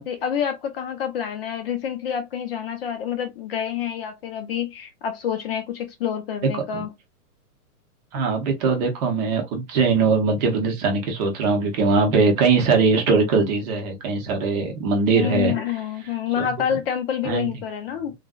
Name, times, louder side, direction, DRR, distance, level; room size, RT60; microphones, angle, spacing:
voice 1, 0.0-6.9 15.1-18.1, left 9 dB, 40° left, 0.6 m, -27 dB
voice 2, 8.1-15.5 16.4-16.5 17.2-17.5, right 4 dB, 30° right, 0.7 m, -21 dB
3.2 x 2.5 x 2.3 m
hypercardioid pair, 135°, 46 cm